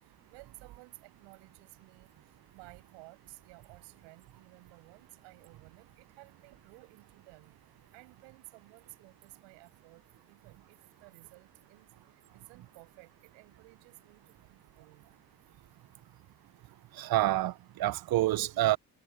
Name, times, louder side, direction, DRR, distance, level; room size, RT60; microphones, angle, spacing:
voice 1, 0.3-2.1 2.5-7.5 7.9-11.9 12.1-15.1, right 27 dB, 75° right, 7.6 m, -56 dB
voice 2, 17.0-18.8, right 15 dB, 50° right, 1.0 m, -28 dB
hypercardioid pair, 45°, 45 cm